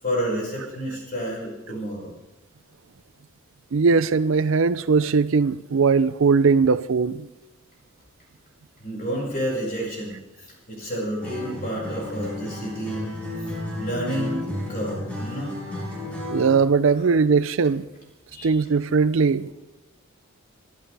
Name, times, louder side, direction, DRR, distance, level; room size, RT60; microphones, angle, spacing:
voice 1, 0.0-2.1 8.8-13.1 13.4-13.5 13.8-15.5 18.3-18.5, equal, 40° left, 5.5 m, -30 dB
voice 2, 3.7-7.3 16.3-17.9 18.4-19.5, right 5 dB, 60° right, 0.5 m, -20 dB
Acoustic guitar, 11.2-16.6, left 1 dB, 5° left, 5.7 m, -33 dB
23.5 x 13.0 x 3.4 m
head